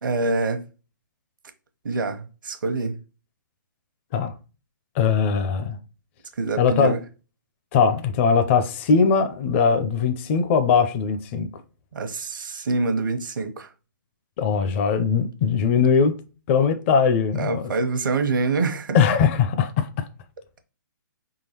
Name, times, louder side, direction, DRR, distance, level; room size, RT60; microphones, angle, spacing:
voice 1, 0.0-0.6 1.8-3.0 6.3-7.0 11.9-13.7 17.4-19.0, right 3 dB, 70° right, 1.0 m, -25 dB
voice 2, 5.0-5.8 6.6-6.9 7.7-11.5 14.4-16.1 16.5-17.6 18.9-20.1, left 6 dB, 35° left, 0.6 m, -20 dB
4.8 x 3.8 x 2.9 m
hypercardioid pair, 145°, 11 cm